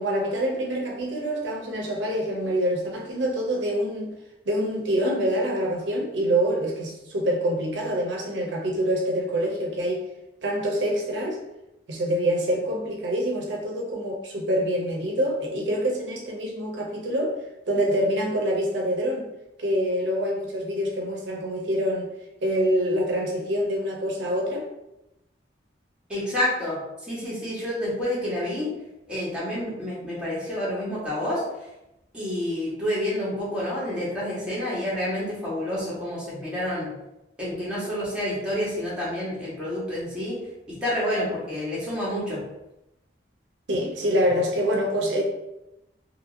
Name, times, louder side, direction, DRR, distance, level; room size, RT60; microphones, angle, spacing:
voice 1, 0.0-4.1 4.5-10.1 10.4-11.4 11.9-17.4 17.7-19.3 19.6-22.1 22.4-24.7 43.7-45.2, equal, 75° right, -1 dB, 0.5 m, -26 dB
voice 2, 26.1-26.8 27.1-28.7 29.1-31.4 32.1-36.9 37.4-40.4 40.7-42.4, left 1 dB, 5° right, -8 dB, 1.0 m, -28 dB
2.8 x 2.7 x 2.5 m, 0.90 s
head